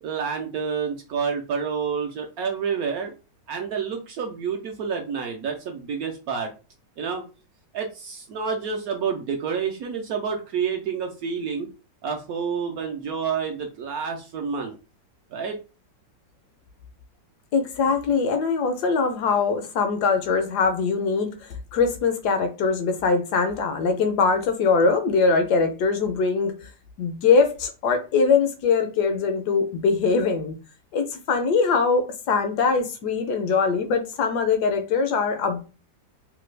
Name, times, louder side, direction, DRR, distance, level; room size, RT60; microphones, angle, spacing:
voice 1, 0.0-3.1 3.5-6.5 7.0-7.2 7.7-11.7 12.0-14.8 15.3-15.6, right 6 dB, 70° right, 0.9 m, -29 dB
voice 2, 17.5-26.7 27.0-30.5 30.9-35.6, left 4 dB, 75° left, 1.1 m, -22 dB
3.2 x 2.2 x 3.2 m
omnidirectional pair, 1.9 m